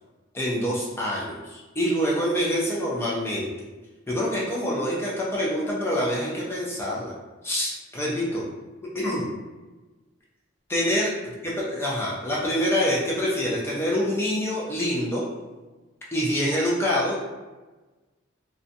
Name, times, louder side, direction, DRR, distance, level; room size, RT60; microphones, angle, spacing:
voice 1, 0.3-3.5 4.1-7.1 7.4-8.4 8.9-9.3 10.7-11.1 11.4-15.2 16.1-17.2, equal, 10° left, -5 dB, 0.3 m, -26 dB
2.5 x 2.2 x 2.6 m, 1.2 s
head